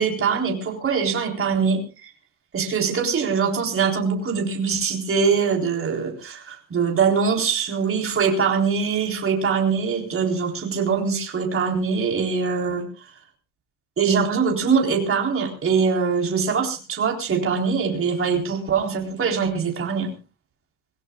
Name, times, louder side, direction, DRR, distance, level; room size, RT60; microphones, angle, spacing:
voice 1, 0.0-2.1 2.5-13.1 14.0-20.1, right 5 dB, 30° right, 1 dB, 3.9 m, -23 dB
25.5 x 17.0 x 2.3 m, 0.32 s
cardioid pair, 155°, 46 cm